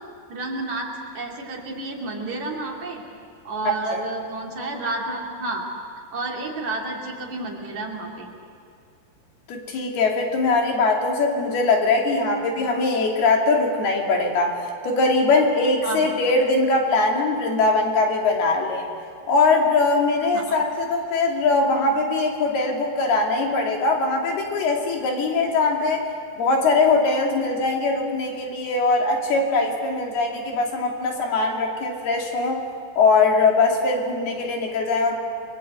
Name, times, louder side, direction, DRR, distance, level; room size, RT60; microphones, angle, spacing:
voice 1, 0.3-3.0 3.5-5.7 6.1-8.3 15.8-16.1 20.3-20.6, right 2 dB, 50° right, 0 dB, 3.9 m, -30 dB
voice 2, 9.5-14.6 14.8-18.9 19.3-26.0 26.4-32.6 33.0-35.2, left 3 dB, 80° left, 1 dB, 4.7 m, -21 dB
29.5 x 23.0 x 8.1 m, 2.3 s
omnidirectional pair, 4.5 m